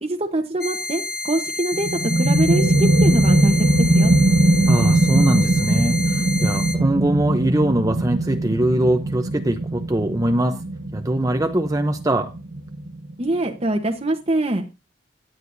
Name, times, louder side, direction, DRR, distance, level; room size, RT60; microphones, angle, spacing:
voice 1, 0.0-3.6 3.9-4.1 13.2-14.6, right 1 dB, 35° right, 3 dB, 1.1 m, -23 dB
sound 1, 0.6-6.8, left 2 dB, 60° left, 1.9 m, -30 dB
sound 2, 1.7-13.1, right 1 dB, 80° right, 1.4 m, -20 dB
voice 2, 4.7-10.6 10.9-12.3, right 1 dB, 20° right, 6 dB, 0.7 m, -22 dB
17.5 x 10.5 x 2.7 m, 0.27 s
head